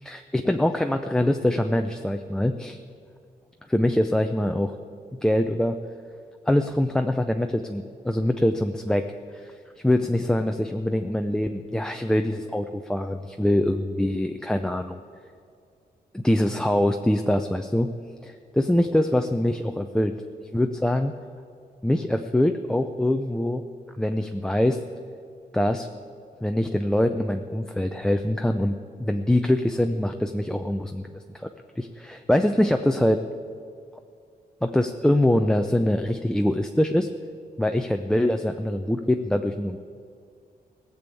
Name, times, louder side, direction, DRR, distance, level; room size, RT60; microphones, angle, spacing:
voice 1, 0.0-2.8 3.7-4.7 5.2-5.8 6.5-9.1 9.3-9.5 9.8-15.0 16.1-17.9 18.2-21.1 21.8-23.6 24.0-24.8 25.5-25.9 26.4-31.5 31.8-33.2 34.6-37.1 37.6-39.8, left 1 dB, 5° left, 5 dB, 0.4 m, -24 dB
17.5 x 7.0 x 8.2 m, 2.3 s
wide cardioid pair, 150°, 16 cm